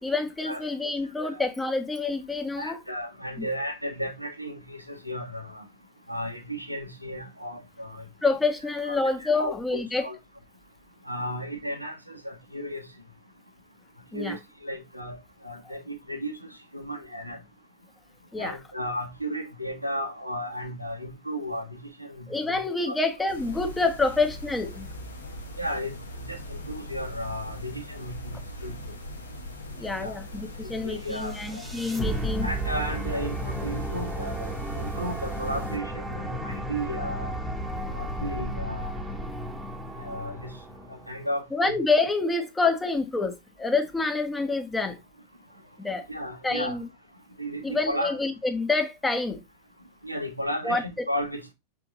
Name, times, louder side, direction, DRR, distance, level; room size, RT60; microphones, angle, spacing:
voice 1, 0.0-2.8 3.4-3.5 8.2-10.1 14.1-14.4 18.3-18.6 22.3-24.9 29.8-32.5 41.5-45.0 45.8-46.1 46.4-46.9 47.6-49.4 50.6-50.8, left 3 dB, 10° left, 1.4 m, -27 dB
voice 2, 2.6-5.6 6.1-8.0 8.8-10.2 11.1-12.9 14.1-15.2 15.4-17.4 18.4-22.6 22.9-23.0 25.6-26.0 26.3-28.4 28.6-28.7 29.9-30.1 30.8-31.6 32.4-34.5 34.7-37.3 37.9-39.0 40.0-40.5 40.9-41.8 46.1-46.8 47.4-48.2 50.0-51.5, equal, 90° right, 1.5 m, -34 dB
sound 1, 23.3-35.8, left 1 dB, 75° left, 1.5 m, -40 dB
sound 2, 31.0-41.2, right 1 dB, 5° right, 1.5 m, -33 dB
6.7 x 4.5 x 3.8 m
figure-of-eight pair, 90°, 0 cm